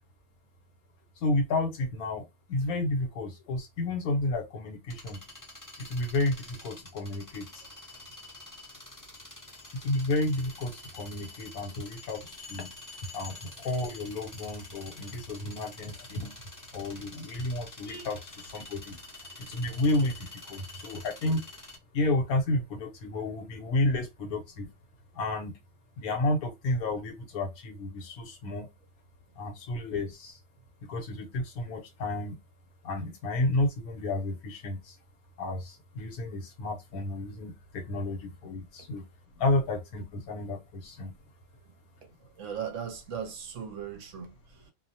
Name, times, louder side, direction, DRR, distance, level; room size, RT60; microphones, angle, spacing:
voice 1, 1.2-5.2 5.8-7.6 9.7-12.7 13.1-16.3 16.7-19.0 19.4-21.4 21.9-24.7 25.1-25.5 26.0-28.7 29.4-30.4 30.8-32.3 32.8-34.9 35.4-39.0 39.4-41.2, left 2 dB, 85° left, 1.3 m, -31 dB
sound 1, 4.9-21.8, left 2 dB, 20° left, 0.5 m, -47 dB
voice 2, 42.0-44.7, right 7 dB, 65° right, 0.9 m, -39 dB
2.7 x 2.1 x 2.7 m
omnidirectional pair, 1.5 m